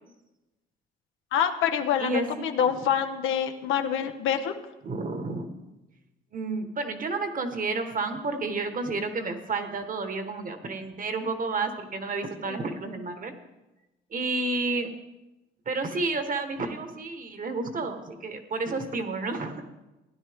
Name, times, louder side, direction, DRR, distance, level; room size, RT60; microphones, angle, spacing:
voice 1, 1.3-2.1 2.4-4.5 12.5-12.6, left 8 dB, 90° left, 6 dB, 0.8 m, -26 dB
voice 2, 2.0-2.5 4.8-5.5 6.3-13.3 14.1-14.9 15.6-19.6, right 3 dB, 45° right, 7 dB, 1.4 m, -31 dB
16.0 x 10.0 x 3.6 m, 1.1 s
cardioid pair, 90°, 20 cm